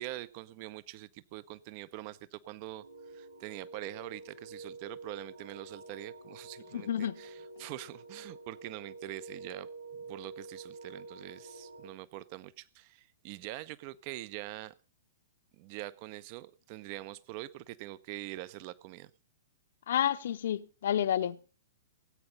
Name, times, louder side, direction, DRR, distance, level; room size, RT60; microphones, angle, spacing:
voice 1, 0.0-9.7 10.1-14.7 15.6-19.1, right 16 dB, 40° right, 0.7 m, -44 dB
sound 1, 2.8-11.9, right 3 dB, 70° right, 6.2 m, -48 dB
voice 2, 6.7-7.2 19.9-21.6, left 10 dB, 55° left, 0.8 m, -30 dB
18.0 x 8.7 x 5.2 m
figure-of-eight pair, 110°, 0 cm